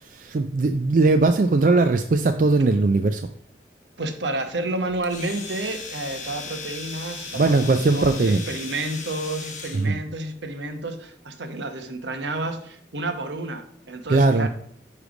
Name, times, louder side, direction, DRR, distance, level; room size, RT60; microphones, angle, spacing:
voice 1, 0.0-3.2 7.4-8.4 9.7-10.0 14.1-14.5, right 3 dB, 45° right, 7 dB, 0.3 m, -19 dB
voice 2, 4.0-14.5, right 2 dB, 75° right, 7 dB, 1.0 m, -30 dB
Domestic sounds home sounds, 5.0-9.9, left 4 dB, 40° left, 1.2 m, -37 dB
9.9 x 3.3 x 5.1 m, 0.63 s
head